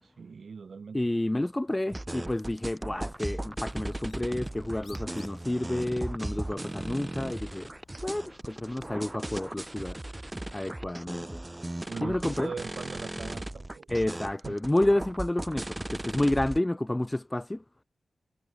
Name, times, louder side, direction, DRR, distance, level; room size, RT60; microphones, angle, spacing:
voice 1, 0.0-1.0 11.9-13.9 14.4-14.6, right 5 dB, 65° right, 5.4 m, -40 dB
voice 2, 0.9-7.7 8.0-10.2 10.5-11.4 12.0-12.5 13.9-17.6, left 1 dB, 15° left, 0.5 m, -30 dB
sound 1, 1.9-16.6, right 1 dB, 15° right, 1.1 m, -37 dB
Bird, 3.1-9.0, left 4 dB, 55° left, 6.4 m, -58 dB
wide cardioid pair, 95°, 0 cm